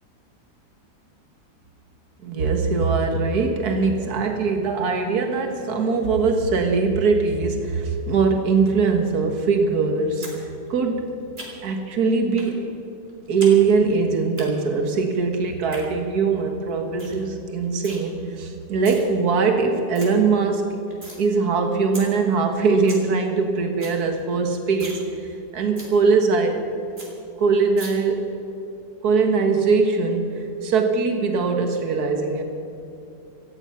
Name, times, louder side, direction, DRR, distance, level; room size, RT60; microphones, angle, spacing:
voice 1, 2.2-10.3 10.7-11.1 11.6-12.7 13.3-20.8 21.2-25.0 25.5-26.6 27.4-28.3 29.0-32.4, right 4 dB, 70° right, 4 dB, 2.0 m, -21 dB
sound 1, 10.2-10.4 10.7-11.8 12.4-12.5 12.9-13.6 13.8-14.4 15.5-15.8 16.3-16.4 16.7-16.8 17.0-17.2 17.5-18.0 18.6-19.0 19.5-19.6 19.7-20.1 20.5-21.2 21.6-21.7 21.9-22.1 22.4-22.5 22.7-23.0 23.4-23.5 23.7-24.0 24.3-24.4 24.7-25.0 25.3-25.4 25.8-25.9 26.3-26.4 26.6-26.7 27.0-27.1 27.8-27.9, right 2 dB, 35° right, 3.6 m, -38 dB
18.0 x 14.0 x 5.8 m, 2.8 s
omnidirectional pair, 1.8 m